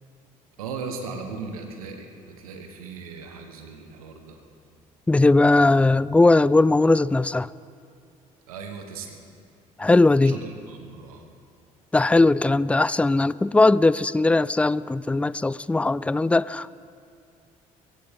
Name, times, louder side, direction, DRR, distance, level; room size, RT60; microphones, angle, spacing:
voice 1, 0.6-4.4 8.5-9.2 10.2-11.2, right 4 dB, 85° right, 1.3 m, -37 dB
voice 2, 5.1-7.5 9.8-10.4 11.9-16.8, left 2 dB, 5° left, 0.3 m, -19 dB
23.0 x 16.0 x 3.7 m
hypercardioid pair, 55°, 18 cm